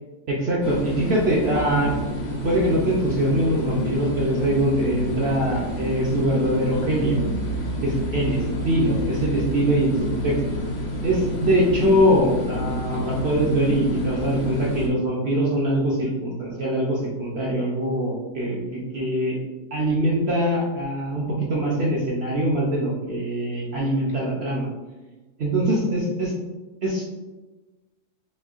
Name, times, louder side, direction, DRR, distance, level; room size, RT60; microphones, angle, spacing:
voice 1, 0.3-2.0 2.4-7.2 7.8-10.4 11.0-19.4 19.7-24.7 25.4-26.3 26.8-27.0, right 1 dB, 60° right, -4 dB, 0.7 m, -23 dB
sound 1, 0.6-14.9, equal, 60° left, 0.4 m, -29 dB
4.4 x 3.0 x 2.4 m, 1.2 s
omnidirectional pair, 1.7 m